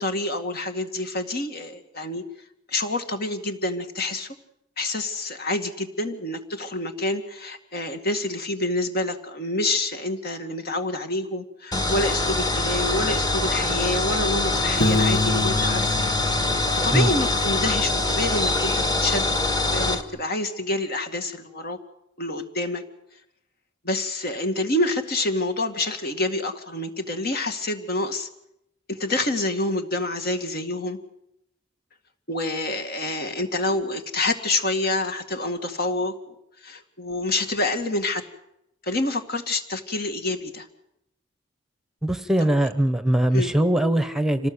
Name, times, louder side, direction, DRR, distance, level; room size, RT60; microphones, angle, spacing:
voice 1, 0.0-2.2 2.7-4.4 4.8-16.0 16.7-19.3 19.6-21.8 22.2-22.8 23.8-28.3 28.9-31.0 32.3-36.3 36.6-38.3 38.8-40.7 43.3-43.5, left 2 dB, 55° left, 7 dB, 2.3 m, -27 dB
sound 1, 11.7-20.0, left 2 dB, 20° left, 1.7 m, -24 dB
Piano, 14.8-17.6, left 2 dB, 90° left, 1.6 m, -27 dB
voice 2, 42.0-44.5, right 1 dB, ahead, 11 dB, 1.0 m, -21 dB
26.5 x 18.5 x 8.0 m, 0.82 s
head